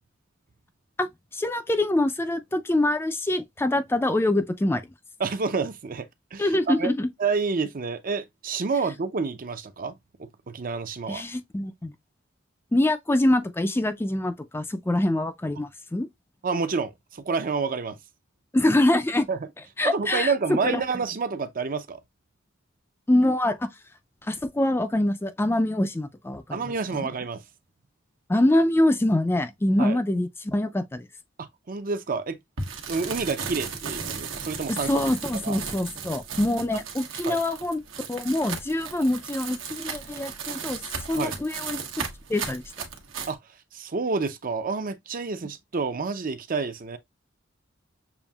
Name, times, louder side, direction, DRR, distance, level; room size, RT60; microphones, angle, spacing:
voice 1, 1.0-4.8 6.4-7.1 11.1-11.9 12.7-16.1 18.5-19.3 19.8-20.8 23.1-23.7 24.2-26.7 27.0-27.1 28.3-31.1 34.7-37.8 38.1-40.8 41.1-41.8 42.3-42.6, left 1 dB, 10° left, 0.4 m, -24 dB
voice 2, 5.2-6.9 7.2-9.9 10.2-11.2 16.4-18.0 19.3-19.4 19.8-22.0 26.5-27.4 29.8-30.0 31.7-32.4 32.9-35.0 35.4-35.6 37.3-37.4 41.2-41.3 43.3-43.4 43.7-47.0, right 4 dB, 45° right, 0.6 m, -29 dB
sound 1, 32.6-43.3, right 5 dB, 85° right, 1.1 m, -35 dB
6.9 x 2.6 x 2.3 m
head